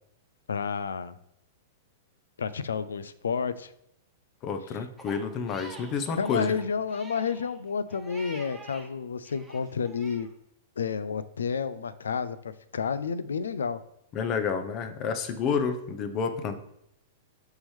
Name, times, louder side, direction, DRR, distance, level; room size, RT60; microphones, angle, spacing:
voice 1, 0.5-1.2 2.4-3.7 6.2-10.3 10.8-13.8, left 6 dB, 85° left, 14 dB, 0.4 m, -30 dB
voice 2, 4.4-6.5 14.1-16.5, left 6 dB, 40° left, 9 dB, 0.8 m, -29 dB
Crying sobbing, 5.0-8.9 9.2-10.3, right 2 dB, 5° right, 1.3 m, -47 dB
5.9 x 5.6 x 3.3 m, 0.77 s
hypercardioid pair, 115°, 0 cm